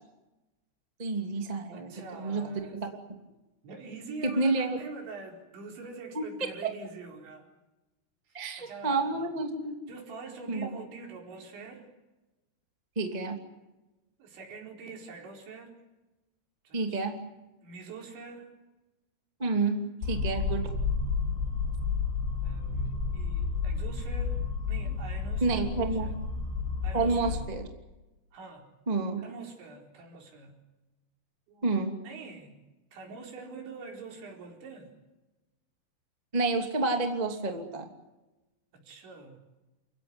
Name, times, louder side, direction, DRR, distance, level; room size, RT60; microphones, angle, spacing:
voice 1, 1.0-1.9 2.2-2.5 2.7-2.9 4.2-4.8 6.1-6.2 8.3-9.7 10.5-10.7 12.9-13.4 16.7-17.2 19.4-20.7 25.4-26.2 26.9-27.7 28.9-29.2 31.6-31.9 36.3-37.9, right 3 dB, 30° right, 3 dB, 0.7 m, -29 dB
voice 2, 1.7-2.8 3.6-7.5 8.3-9.3 9.9-11.9 14.2-15.8 16.6-17.0 17.6-18.5 20.1-20.2 22.4-24.4 24.7-26.3 26.8-27.4 28.3-28.7 29.2-30.6 31.5-31.7 32.0-32.6 32.9-34.9 38.7-39.4, right 4 dB, 60° right, 1 dB, 6.5 m, -45 dB
sound 1, 20.0-27.4, left 5 dB, 80° left, 5.8 m, -31 dB
Bass drum, 22.9-24.3, right 3 dB, 90° right, 7.0 m, -48 dB
29.5 x 16.0 x 9.7 m, 1.1 s
omnidirectional pair, 5.9 m